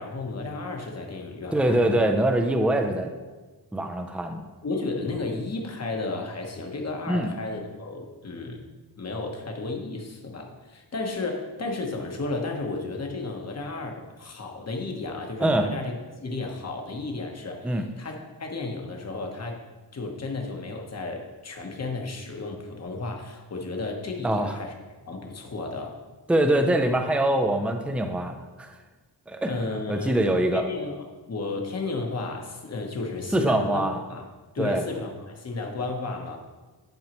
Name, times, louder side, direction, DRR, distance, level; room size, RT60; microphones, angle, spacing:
voice 1, 0.0-2.0 4.6-8.7 9.0-15.9 16.2-19.6 19.9-24.7 25.1-26.0 29.5-30.2 30.5-33.8 34.1-34.2 34.5-36.4, left 3 dB, 40° left, 2 dB, 1.1 m, -33 dB
voice 2, 1.5-3.1 3.7-4.4 7.1-7.3 15.4-15.7 17.6-17.8 24.2-24.6 26.3-28.7 29.3-30.7 33.3-34.0 34.6-34.8, right 1 dB, 5° right, 5 dB, 0.5 m, -24 dB
10.5 x 5.4 x 3.0 m, 1.3 s
wide cardioid pair, 135°, 40 cm